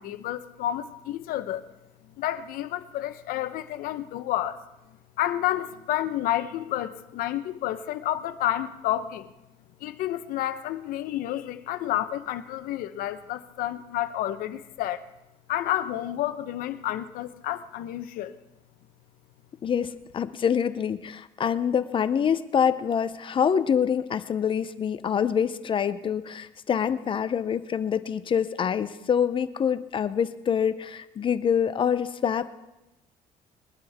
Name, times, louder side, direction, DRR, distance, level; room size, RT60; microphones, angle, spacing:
voice 1, 0.0-1.7 2.1-4.6 5.2-9.3 9.8-15.0 15.5-18.4, left 13 dB, 70° left, 0.9 m, -30 dB
voice 2, 19.6-32.5, left 8 dB, 35° left, 0.6 m, -26 dB
21.5 x 12.5 x 3.6 m
cardioid pair, 120°, 15 cm